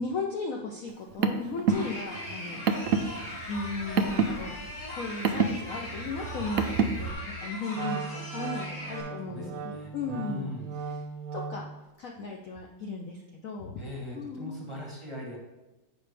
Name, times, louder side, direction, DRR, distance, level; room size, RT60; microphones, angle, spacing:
voice 1, 0.0-3.2 3.5-4.6 4.9-7.1 7.4-10.5 11.3-11.7 12.0-13.8 14.1-14.6, left 4 dB, 65° left, 0 dB, 0.8 m, -36 dB
Car, 0.9-7.1, right 5 dB, 90° right, 0.7 m, -29 dB
sound 1, 1.7-9.0, left 1 dB, 40° left, 2.3 m, -40 dB
Wind instrument woodwind instrument, 7.7-11.8, right 5 dB, 70° right, 1.1 m, -38 dB
voice 2, 9.2-10.7 13.8-15.4, left 1 dB, 20° right, -4 dB, 1.0 m, -40 dB
8.2 x 5.4 x 3.3 m, 1.1 s
omnidirectional pair, 2.0 m